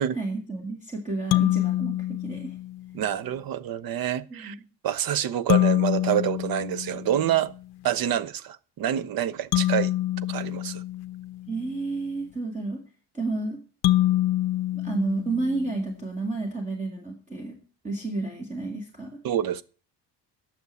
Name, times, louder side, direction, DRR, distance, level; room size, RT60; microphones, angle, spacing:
voice 1, 0.0-2.5 4.3-4.6 11.5-12.8 13.1-13.6 14.7-17.6 17.8-19.2, right 3 dB, 15° right, 2.0 m, -31 dB
sound 1, 1.3-3.0 5.5-7.5 9.5-11.7 13.8-15.9, left 15 dB, 60° left, 0.6 m, -26 dB
voice 2, 2.9-4.6 4.8-7.5 7.8-9.9 10.3-10.8 19.2-19.6, right 11 dB, 55° right, 0.8 m, -27 dB
9.6 x 6.7 x 8.2 m
cardioid pair, 150°, 43 cm